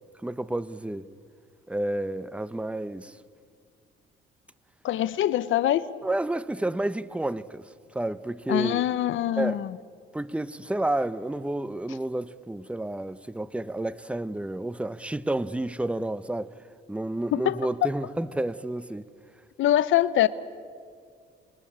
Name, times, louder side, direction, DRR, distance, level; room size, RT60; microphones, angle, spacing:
voice 1, 0.2-1.1 1.7-3.1 6.0-7.6 7.9-8.8 9.4-9.6 10.1-16.5 16.9-19.1, right 1 dB, 5° right, 0.8 m, -30 dB
voice 2, 4.8-5.9 8.5-9.7 17.3-17.9 19.6-20.3, left 12 dB, 75° left, 0.8 m, -24 dB
28.0 x 21.5 x 8.7 m
cardioid pair, 90°, 20 cm